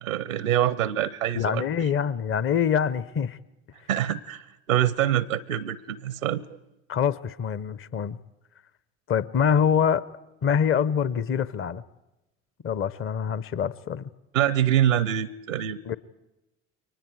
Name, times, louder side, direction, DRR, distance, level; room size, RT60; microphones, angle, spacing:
voice 1, 0.0-1.6 3.9-6.4 14.3-15.8, right 11 dB, 85° right, 20 dB, 0.7 m, -25 dB
voice 2, 1.3-3.4 6.9-8.2 9.1-10.0 10.4-11.8 12.6-14.1 15.9-16.0, left 7 dB, 35° left, 18 dB, 0.9 m, -25 dB
29.5 x 23.5 x 4.8 m, 0.98 s
figure-of-eight pair, 65°, 39 cm